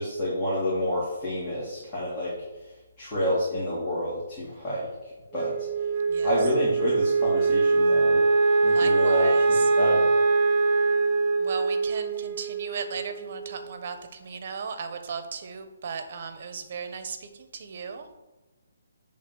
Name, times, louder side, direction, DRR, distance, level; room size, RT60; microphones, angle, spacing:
voice 1, 0.0-2.4 3.0-4.9 5.3-5.7 6.2-8.2 8.6-9.3 9.8-10.1, left 1 dB, 20° left, -8 dB, 2.2 m, -28 dB
Wind instrument woodwind instrument, 5.3-13.8, right 3 dB, 20° right, 0.9 m, -23 dB
voice 2, 8.7-9.6 11.4-18.1, right 6 dB, 45° right, 8 dB, 0.9 m, -36 dB
8.3 x 3.7 x 6.1 m, 1.1 s
hypercardioid pair, 160°, 0 cm